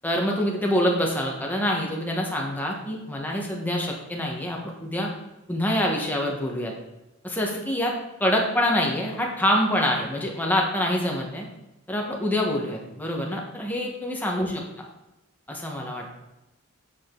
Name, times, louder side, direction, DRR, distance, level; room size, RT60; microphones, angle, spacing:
voice 1, 0.0-5.1 5.5-6.7 7.2-7.9 8.2-11.5 11.9-14.6 15.5-16.1, equal, 10° left, -1 dB, 1.1 m, -26 dB
7.8 x 5.0 x 3.8 m, 0.96 s
head